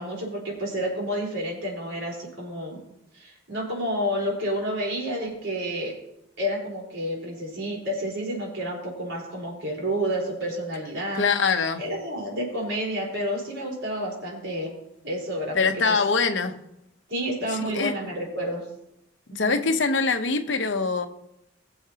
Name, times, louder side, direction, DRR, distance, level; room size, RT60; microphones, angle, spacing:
voice 1, 0.0-2.8 3.1-5.9 6.4-11.3 11.8-14.7 15.0-16.0 17.1-18.6 19.3-19.6, equal, 75° right, 4.5 m, -30 dB
voice 2, 11.2-11.8 15.5-16.6 17.5-17.9 19.3-21.1, left 4 dB, 65° left, 0.9 m, -23 dB
21.5 x 7.2 x 2.9 m
head